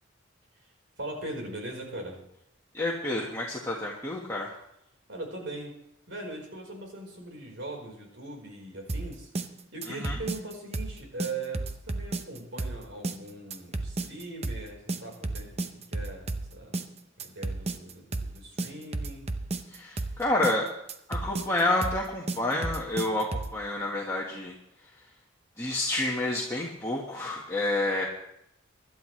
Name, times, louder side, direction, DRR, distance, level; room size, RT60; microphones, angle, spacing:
voice 1, 1.0-2.2 5.1-5.7 6.1-9.3 9.7-16.7 17.2-19.3, right 2 dB, 65° right, 1 dB, 4.5 m, -40 dB
voice 2, 2.7-4.5 9.9-10.2 19.7-20.7 21.1-24.5 25.6-28.0, left 2 dB, 15° left, -4 dB, 1.5 m, -29 dB
sound 1, 8.9-23.6, right 2 dB, 30° right, 0.7 m, -33 dB
24.0 x 12.0 x 3.3 m, 0.77 s
head